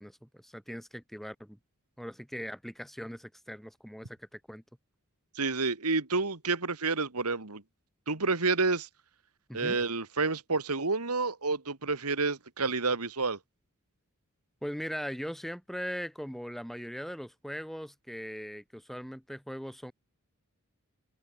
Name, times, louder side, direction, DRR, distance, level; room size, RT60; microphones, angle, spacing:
voice 1, 0.0-1.6 2.0-4.6 9.5-9.8 14.6-19.9, equal, ahead, 6.5 m, -40 dB
voice 2, 5.4-7.6 8.1-8.9 9.5-13.4, right 3 dB, 90° right, 2.2 m, -29 dB
open air
head